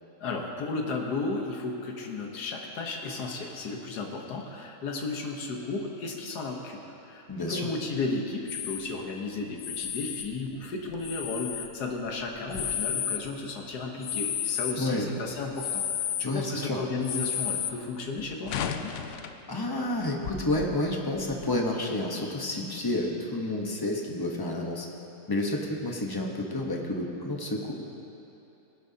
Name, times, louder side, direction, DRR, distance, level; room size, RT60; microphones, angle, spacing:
voice 1, 0.2-18.9, left 3 dB, 85° left, 1 dB, 1.7 m, -34 dB
voice 2, 7.3-7.7 14.8-15.1 16.2-16.8 19.5-24.9 25.3-27.7, left 1 dB, 15° left, 0 dB, 0.9 m, -30 dB
sound 1, 8.5-8.9 9.6-10.3 10.9-11.7 12.4-13.2 14.0-14.8 15.6-16.3 17.0-17.7 18.2-19.4 19.9-20.0 20.2-20.6 21.2-21.5, left 9 dB, 65° left, 0.7 m, -32 dB
19.0 x 11.0 x 2.8 m, 2.9 s
omnidirectional pair, 1.7 m